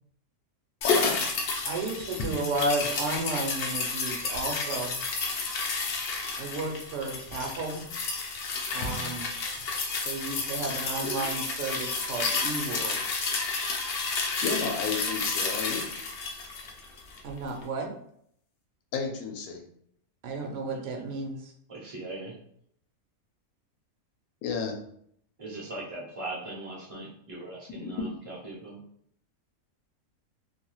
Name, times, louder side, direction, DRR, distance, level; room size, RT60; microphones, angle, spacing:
voice 1, 0.8-1.2 11.0-11.1 14.4-15.9 18.9-19.6 24.4-24.8 27.7-28.2, left 5 dB, 80° left, 3 dB, 1.0 m, -32 dB
sound 1, 0.8-17.3 17.6-17.7, left 4 dB, 65° left, 0.6 m, -31 dB
voice 2, 1.6-5.0 6.4-7.9 8.7-9.3 10.0-13.0 17.2-17.9 20.2-21.4, right 2 dB, 65° right, 2 dB, 0.9 m, -33 dB
voice 3, 21.7-22.4 25.4-28.8, right 2 dB, 40° right, -4 dB, 0.5 m, -39 dB
2.6 x 2.3 x 3.0 m, 0.68 s
omnidirectional pair, 1.5 m